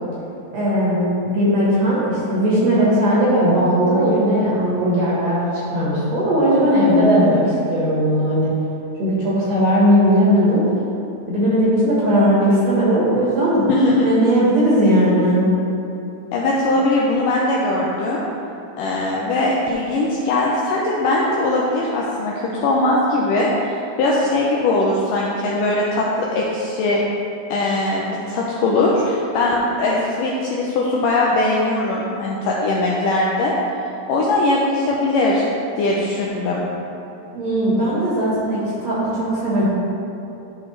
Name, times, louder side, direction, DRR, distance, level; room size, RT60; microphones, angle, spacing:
voice 1, 0.5-7.4 7.7-8.5 9.0-10.6 11.3-13.7 14.0-15.4 37.3-39.7, equal, 55° right, -8 dB, 2.1 m, -18 dB
voice 2, 6.5-7.5 13.7-14.1 16.3-18.2 18.8-23.5 24.0-27.0 27.5-33.6 34.1-35.4 35.8-36.6, left 2 dB, 80° left, -3 dB, 1.9 m, -20 dB
12.5 x 4.4 x 3.2 m, 2.8 s
omnidirectional pair, 4.4 m